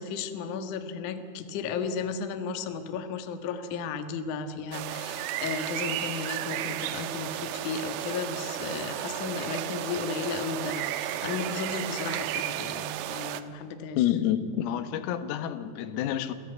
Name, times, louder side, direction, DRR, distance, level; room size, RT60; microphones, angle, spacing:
voice 1, 0.0-14.2, left 5 dB, 65° left, 7 dB, 2.0 m, -34 dB
sound 1, 4.7-13.4, right 13 dB, 80° right, 3.4 m, -33 dB
voice 2, 14.0-16.3, left 11 dB, 90° left, 11 dB, 4.0 m, -28 dB
28.5 x 17.0 x 9.3 m, 2.4 s
omnidirectional pair, 5.9 m